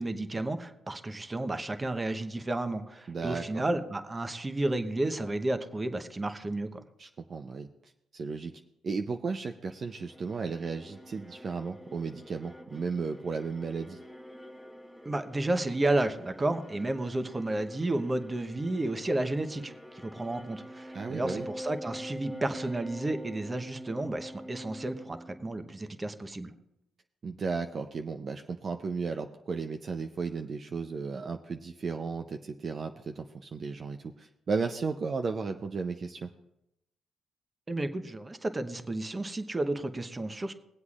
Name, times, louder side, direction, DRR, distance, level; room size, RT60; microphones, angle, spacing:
voice 1, 0.0-6.8 15.0-19.7 20.0-26.5 37.7-40.5, right 2 dB, 20° right, 9 dB, 0.9 m, -32 dB
voice 2, 3.1-3.6 7.0-7.7 8.1-8.5 8.8-14.0 20.9-21.5 27.2-36.3, right 4 dB, 45° right, 5 dB, 0.5 m, -34 dB
sound 1, 9.7-26.0, equal, ahead, 1.0 m, -46 dB
21.5 x 8.0 x 2.4 m, 0.85 s
cardioid pair, 90°, 0 cm